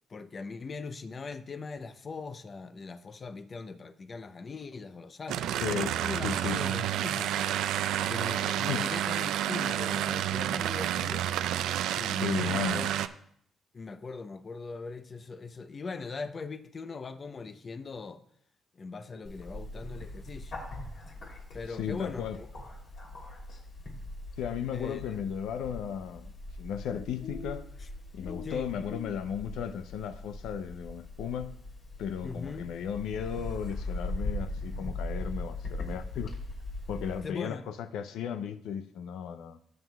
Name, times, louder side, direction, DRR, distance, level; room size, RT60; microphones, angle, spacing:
voice 1, 0.1-5.5 6.0-7.3 8.1-11.3 11.9-12.9 13.7-18.2 18.7-20.5 21.5-22.5 24.7-25.2 27.8-27.9 28.4-28.8 32.2-32.7 37.2-37.6, left 4 dB, 40° left, 0.6 m, -40 dB
sound 1, 5.3-13.1, right 11 dB, 85° right, 0.4 m, -30 dB
voice 2, 5.6-5.9 6.2-6.6 8.7-8.9 12.1-12.9 21.8-22.4 24.4-26.3 26.6-27.7 28.1-31.6 32.0-36.3 36.9-39.6, left 8 dB, 85° left, 0.4 m, -35 dB
Bird, 19.2-37.2, left 2 dB, 60° left, 2.9 m, -40 dB
16.5 x 7.4 x 2.3 m
cardioid pair, 90°, 0 cm